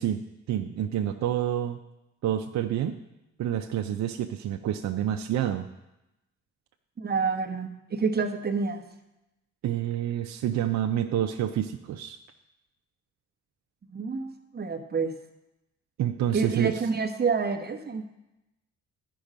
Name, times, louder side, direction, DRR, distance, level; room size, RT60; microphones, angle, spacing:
voice 1, 0.0-1.8 2.2-3.0 3.4-5.7 9.6-12.2 16.0-16.7, right 11 dB, 65° right, 5 dB, 0.6 m, -28 dB
voice 2, 7.0-8.9 13.9-15.2 16.3-18.1, right 5 dB, 35° right, 4 dB, 1.1 m, -28 dB
12.0 x 5.4 x 5.1 m, 0.93 s
cardioid pair, 90°, 30 cm